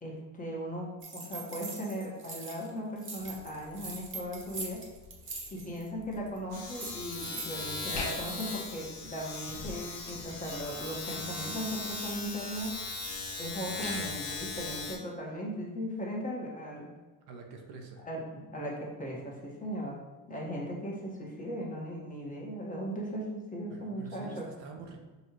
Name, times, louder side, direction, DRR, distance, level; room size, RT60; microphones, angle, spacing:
voice 1, 0.0-4.8 5.5-12.7 13.3-16.9 18.0-20.0 20.3-24.5, equal, 20° left, -3 dB, 1.3 m, -38 dB
sound 1, 1.0-2.7 3.0-5.9 6.1-6.4 6.7-8.5, right 3 dB, 30° right, 1.2 m, -43 dB
Domestic sounds home sounds, 3.2-3.4 3.7-15.0, left 3 dB, 65° left, 1.2 m, -38 dB
voice 2, 17.3-18.0 23.7-25.0, right 4 dB, 65° right, 3 dB, 0.8 m, -46 dB
5.4 x 2.7 x 3.0 m, 1.2 s
hypercardioid pair, 75°, 43 cm